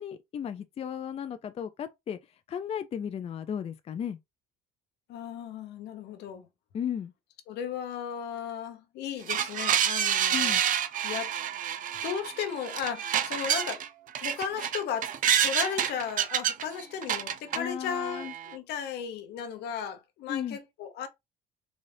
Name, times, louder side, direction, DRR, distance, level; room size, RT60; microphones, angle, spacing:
voice 1, 0.0-2.2 2.5-4.2 6.7-7.1 10.3-10.6 17.5-18.3 20.3-20.6, left 8 dB, 35° left, 0.4 m, -35 dB
voice 2, 5.1-6.5 7.5-10.6 11.0-11.4 11.6-13.8 14.2-15.1 15.4-21.1, left 8 dB, 80° left, 0.9 m, -35 dB
sound 1, 9.3-13.9 14.2-17.6 18.0-18.5, right 9 dB, 50° right, 0.5 m, -28 dB
4.1 x 2.4 x 3.3 m
cardioid pair, 110°, 17 cm